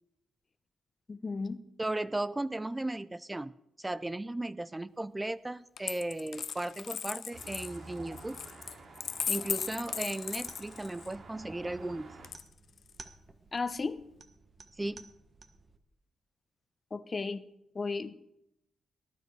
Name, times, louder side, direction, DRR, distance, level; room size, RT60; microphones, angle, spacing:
voice 1, 1.1-1.6 13.5-14.0 16.9-17.5 17.7-18.1, left 4 dB, 35° left, 12 dB, 1.0 m, -34 dB
voice 2, 1.8-8.4 9.3-12.1 14.8-15.1, right 2 dB, 15° right, 15 dB, 0.4 m, -36 dB
Coin (dropping), 5.8-11.1 12.2-12.9, left 7 dB, 60° left, 0.4 m, -37 dB
sound 1, 7.3-12.3, right 3 dB, 60° right, 2.6 m, -50 dB
sound 2, 10.4-15.8, right 3 dB, 40° right, 1.4 m, -55 dB
18.5 x 9.8 x 4.7 m, 0.81 s
cardioid pair, 70°, 0 cm